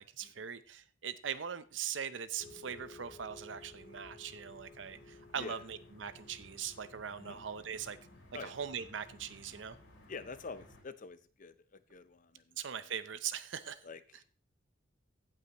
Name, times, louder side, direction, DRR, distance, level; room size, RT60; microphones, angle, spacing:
voice 1, 0.0-8.0 8.4-9.8 12.6-13.8, right 8 dB, 70° right, 0.7 m, -41 dB
sound 1, 2.4-10.8, left 2 dB, 75° left, 3.9 m, -56 dB
voice 2, 10.1-12.6 13.8-14.0, left 4 dB, 45° left, 0.6 m, -46 dB
16.0 x 5.7 x 3.0 m
head